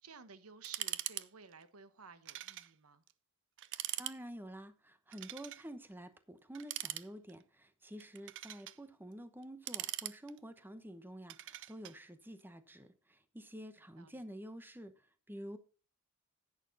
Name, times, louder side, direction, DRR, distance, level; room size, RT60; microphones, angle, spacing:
voice 1, 0.0-3.0 14.0-14.2, right 6 dB, 85° right, 1.0 m, -55 dB
sound 1, 0.6-1.3 1.5-1.6 2.3-2.7 3.1-3.2 3.6-4.2 5.1-5.6 6.5-7.4 8.0-8.8 9.4-10.6 11.3-12.0, right 14 dB, 60° right, 0.5 m, -42 dB
voice 2, 4.0-15.6, equal, 10° right, 0.9 m, -49 dB
11.0 x 8.9 x 4.0 m
head